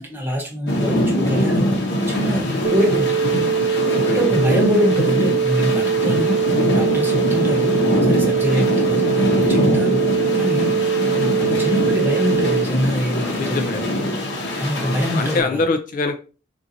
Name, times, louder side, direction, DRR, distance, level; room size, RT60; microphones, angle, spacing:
voice 1, 0.0-1.8 2.1-3.2 4.1-7.8 8.1-10.0 10.3-10.7 11.0-13.9 14.6-15.6, equal, 10° right, -1 dB, 0.9 m, -24 dB
sound 1, 0.7-15.4, left 1 dB, 60° left, 0.8 m, -22 dB
sound 2, 2.6-12.6, right 7 dB, 85° right, 0.4 m, -21 dB
voice 2, 3.8-4.2 8.5-8.7 11.1-11.6 13.3-13.9 14.8-16.1, left 3 dB, 45° left, 6 dB, 0.4 m, -25 dB
3.8 x 2.5 x 2.8 m, 0.33 s
head